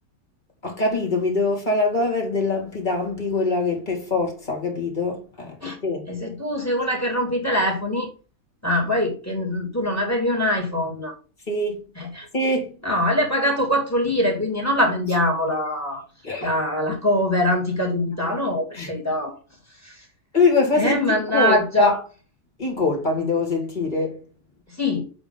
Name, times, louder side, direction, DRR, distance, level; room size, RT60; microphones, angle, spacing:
voice 1, 0.6-6.1 11.5-11.8 12.3-12.7 16.2-16.5 18.7-18.9 20.3-22.0 22.6-24.2, left 3 dB, 30° left, 2.2 m, -23 dB
voice 2, 6.1-8.1 8.6-11.1 12.0-12.3 12.8-16.0 16.4-19.4 19.8-20.0 20.8-22.0 24.8-25.0, left 1 dB, 10° left, 2.4 m, -23 dB
7.8 x 3.7 x 5.3 m
omnidirectional pair, 1.6 m